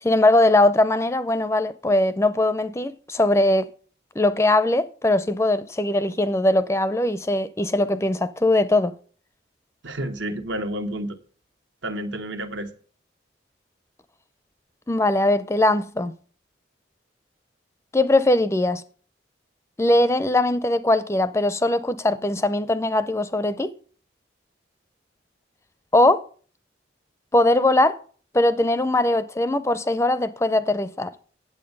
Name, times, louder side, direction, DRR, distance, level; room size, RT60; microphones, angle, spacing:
voice 1, 0.0-3.7 4.2-8.9 14.9-16.1 17.9-18.8 19.8-23.7 25.9-26.2 27.3-28.0 28.3-31.1, left 1 dB, 15° left, 0.4 m, -20 dB
voice 2, 9.8-11.2 11.8-12.7, right 1 dB, 80° right, 1.1 m, -30 dB
8.7 x 8.1 x 5.3 m
head